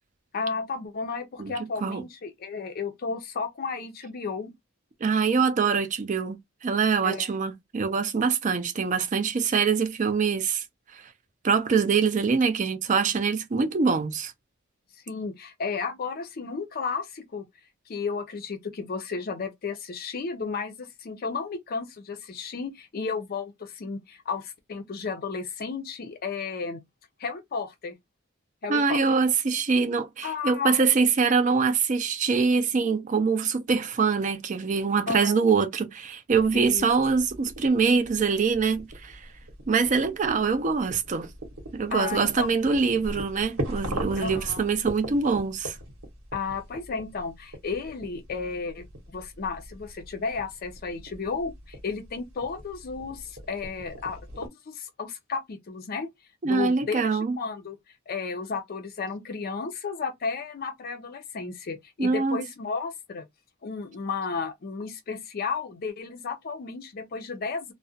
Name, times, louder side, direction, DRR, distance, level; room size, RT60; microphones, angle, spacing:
voice 1, 0.3-4.5 7.0-7.3 15.1-17.5 17.9-26.8 27.2-27.9 28.6-29.0 30.2-30.9 35.1-35.4 36.5-36.9 41.9-42.5 44.2-44.7 46.3-56.1 56.4-57.8 58.1-63.3 63.6-67.7, left 5 dB, 45° left, 0.4 m, -33 dB
voice 2, 5.0-10.6 10.9-11.0 11.4-14.3 28.7-39.3 39.7-41.3 41.7-45.8 56.4-57.4 62.0-62.4, right 5 dB, 35° right, 0.4 m, -24 dB
sound 1, 36.3-54.5, right 1 dB, 80° right, 1.0 m, -40 dB
2.3 x 2.0 x 2.6 m
head